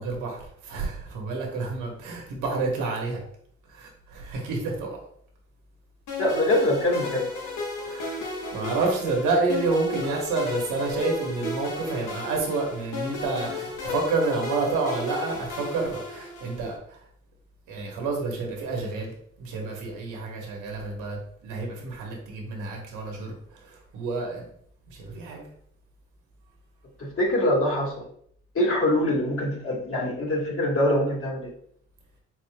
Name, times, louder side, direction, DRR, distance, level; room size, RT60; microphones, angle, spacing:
voice 1, 0.0-3.2 3.7-5.0 7.9-8.2 8.5-17.0 17.7-23.3 23.6-24.5 24.9-25.4, right 3 dB, 90° right, 0 dB, 1.2 m, -29 dB
sound 1, 6.1-16.7, left 3 dB, 90° left, 1.1 m, -34 dB
voice 2, 6.2-7.3 27.0-28.0 28.6-31.5, left 1 dB, 45° left, -2 dB, 1.7 m, -24 dB
4.6 x 4.0 x 2.2 m, 0.65 s
cardioid pair, 90°, 30 cm